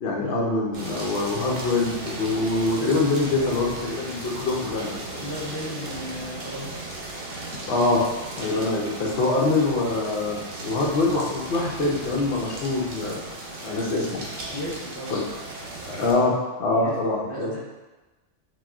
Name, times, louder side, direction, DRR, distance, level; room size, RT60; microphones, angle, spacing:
voice 1, 0.0-5.0 7.5-8.0 8.4-13.2 13.6-14.2 15.1-15.2 15.9-17.5, left 2 dB, 65° left, -2 dB, 0.8 m, -24 dB
sound 1, 0.7-16.1, right 2 dB, 55° right, 0.7 m, -36 dB
voice 2, 5.2-6.8 14.5-15.1 16.7-17.6, left 1 dB, 20° left, -9 dB, 0.9 m, -35 dB
4.1 x 2.1 x 2.4 m, 1.2 s
omnidirectional pair, 1.3 m